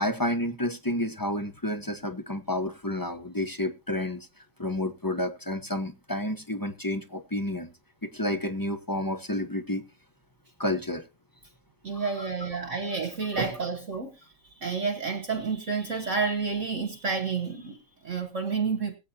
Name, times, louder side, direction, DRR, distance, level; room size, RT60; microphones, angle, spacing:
voice 1, 0.0-4.3 4.6-7.7 8.0-9.8 10.6-11.0 11.9-12.3, left 1 dB, 20° left, 0.6 m, -30 dB
voice 2, 11.8-14.3 14.5-19.0, right 5 dB, 45° right, 1.4 m, -30 dB
21.0 x 8.5 x 2.8 m
omnidirectional pair, 2.0 m